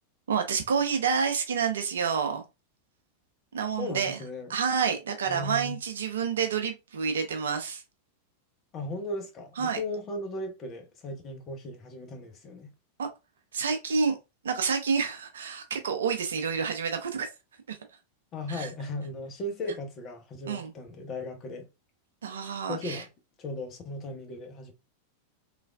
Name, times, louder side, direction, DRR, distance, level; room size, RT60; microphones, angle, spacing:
voice 1, 0.3-2.4 3.5-4.2 4.5-7.8 9.6-9.8 13.0-13.1 13.5-14.2 14.4-17.3 17.7-17.8 18.5-18.7 20.5-20.7 22.2-23.0, right 6 dB, 65° right, 0.6 m, -28 dB
voice 2, 3.8-4.5 5.3-5.8 8.7-12.7 18.3-21.7 22.7-23.1 23.4-24.7, left 1 dB, 30° left, 0.7 m, -37 dB
3.2 x 2.4 x 2.2 m
figure-of-eight pair, 90°, 0 cm